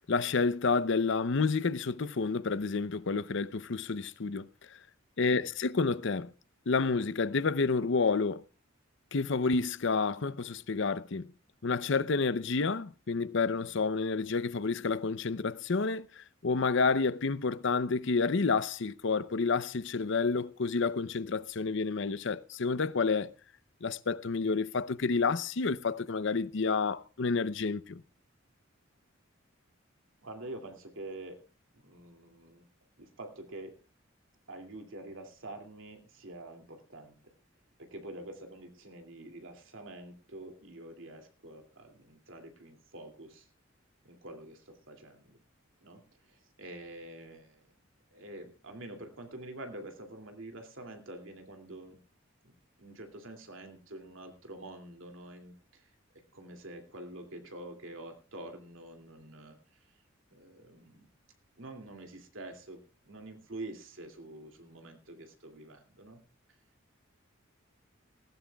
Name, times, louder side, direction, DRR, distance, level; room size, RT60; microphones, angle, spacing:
voice 1, 0.1-4.5 5.2-6.3 6.7-8.4 9.1-11.3 11.6-23.3 23.8-28.0, left 4 dB, 65° left, 0.7 m, -29 dB
voice 2, 5.2-5.5 30.2-31.4 31.7-32.7 33.0-33.8 34.5-37.3 37.8-43.5 44.0-45.4 45.8-46.0 46.3-47.6 48.1-52.0 52.4-55.9 56.3-59.6 60.3-61.1 61.6-66.2, right 1 dB, 75° right, 2.6 m, -47 dB
19.0 x 15.0 x 2.3 m
head